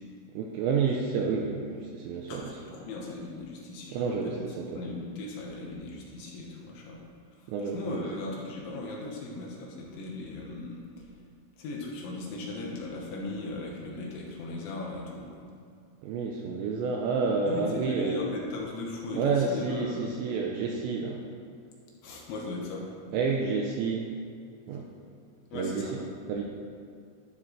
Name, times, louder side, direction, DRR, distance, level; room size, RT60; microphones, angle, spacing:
voice 1, 0.3-2.6 3.9-4.8 7.5-8.0 16.0-18.2 19.1-21.2 23.1-24.1 24.7-24.9 25.5-25.9 26.3-26.4, right 4 dB, 85° right, 0 dB, 2.6 m, -29 dB
voice 2, 2.3-4.4 4.7-7.0 7.4-10.8 11.6-15.4 17.5-20.1 22.0-22.9 25.5-26.0, left 2 dB, 75° left, -2 dB, 3.3 m, -38 dB
12.0 x 11.5 x 3.3 m, 2.2 s
omnidirectional pair, 5.9 m